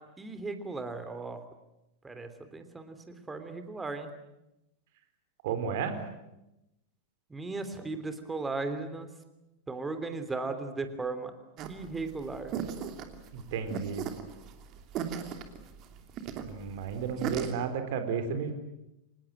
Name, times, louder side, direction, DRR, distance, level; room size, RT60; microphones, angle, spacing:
voice 1, 0.0-1.4 2.0-4.1 7.3-9.1 9.7-11.3 11.7-12.6, right 3 dB, 10° right, 8 dB, 3.1 m, -36 dB
voice 2, 5.4-5.9 13.3-14.1 16.4-18.5, right 6 dB, 50° right, 8 dB, 4.0 m, -33 dB
sound 1, 11.6-17.5, right 8 dB, 35° right, 2.8 m, -37 dB
25.5 x 20.0 x 9.0 m, 0.90 s
figure-of-eight pair, 90°, 0 cm